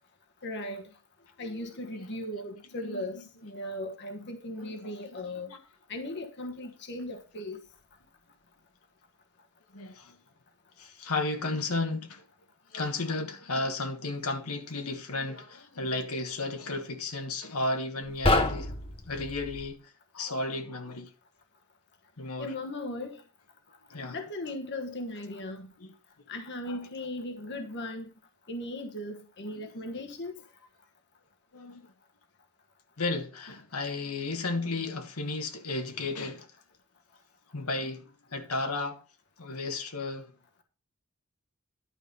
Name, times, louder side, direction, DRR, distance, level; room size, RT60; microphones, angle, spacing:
voice 1, 0.4-0.8 1.4-5.5 5.9-7.6 22.4-23.2 24.1-25.7 26.3-28.1 28.5-30.3, left 1 dB, 55° left, 1.2 m, -37 dB
voice 2, 2.7-3.2 4.6-5.6 9.7-10.2 10.8-12.2 12.7-18.7 19.1-19.8 20.1-21.1 22.2-22.5 23.9-24.2 25.8-25.9 26.7-26.8 29.5-29.6 31.5-31.9 33.0-36.5 37.5-39.0 39.4-40.3, left 2 dB, 85° left, 1.5 m, -34 dB
sound 1, 18.1-19.7, left 2 dB, 25° left, 1.1 m, -28 dB
11.0 x 5.1 x 5.3 m
head